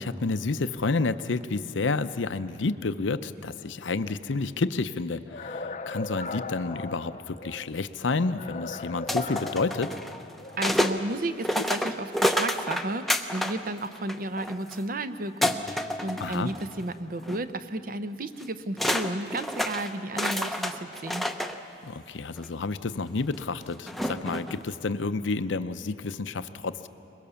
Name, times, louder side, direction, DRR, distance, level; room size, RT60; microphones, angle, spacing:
voice 1, 0.0-10.0 16.2-16.5 21.8-26.9, left 3 dB, 80° left, 12 dB, 0.7 m, -30 dB
sound 1, 5.3-7.7 8.3-10.7, left 3 dB, 40° left, 0.7 m, -38 dB
sound 2, 9.1-11.0 11.4-13.6 13.9-14.8 15.4-16.8 17.2-17.4 18.4-18.5 18.8-21.6 22.4-22.5 23.9-24.6, left 1 dB, ahead, 0.7 m, -29 dB
voice 2, 10.6-21.3, right 2 dB, 45° right, 11 dB, 0.7 m, -33 dB
22.5 x 21.5 x 7.0 m, 2.7 s
head